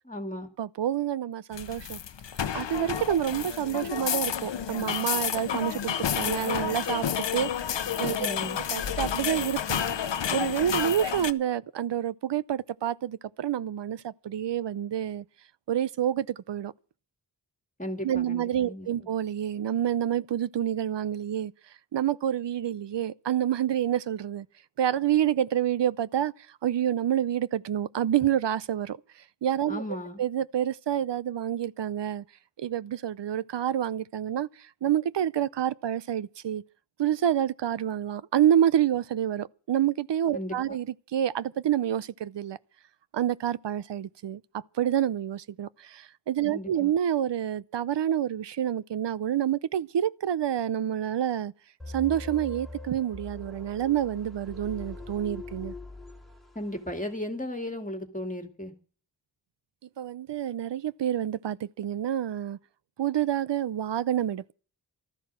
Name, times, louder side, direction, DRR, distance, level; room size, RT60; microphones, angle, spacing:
voice 1, 0.1-0.5 8.2-8.6 17.8-18.9 29.7-30.2 40.3-40.8 46.5-46.9 56.5-58.7, left 1 dB, 20° left, 2.3 m, -35 dB
voice 2, 0.6-2.0 2.5-7.5 8.0-8.3 8.7-9.8 10.3-15.2 15.7-16.7 18.0-21.5 21.9-24.5 24.8-29.0 29.4-29.8 30.2-32.2 32.6-36.6 37.0-40.9 41.1-42.6 43.1-51.5 51.9-55.7 60.0-62.6 63.0-64.5, right 10 dB, 75° right, 0.7 m, -28 dB
sound 1, 1.5-11.3, left 8 dB, 75° left, 0.9 m, -30 dB
sound 2, 51.8-56.8, left 2 dB, ahead, 2.4 m, -42 dB
14.5 x 13.0 x 6.1 m
wide cardioid pair, 75°, 43 cm